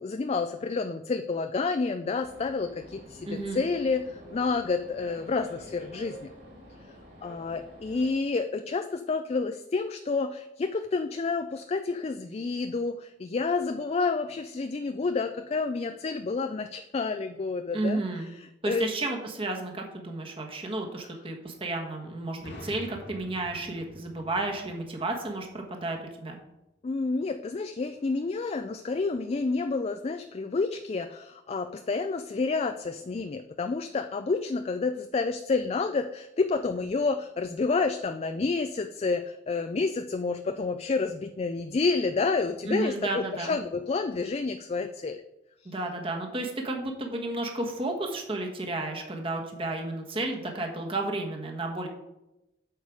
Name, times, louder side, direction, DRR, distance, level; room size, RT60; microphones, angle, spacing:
voice 1, 0.0-6.3 7.2-18.0 18.7-18.9 26.8-45.2, left 4 dB, 35° left, 8 dB, 0.4 m, -29 dB
sound 1, 2.2-8.1, equal, 50° right, 3.6 m, -48 dB
voice 2, 3.3-3.6 17.7-18.3 18.6-26.4 42.7-43.6 45.6-51.9, right 2 dB, 30° right, 2 dB, 1.3 m, -32 dB
sound 2, 22.4-26.1, left 1 dB, 75° left, 1.5 m, -47 dB
8.2 x 6.6 x 4.8 m, 0.91 s
head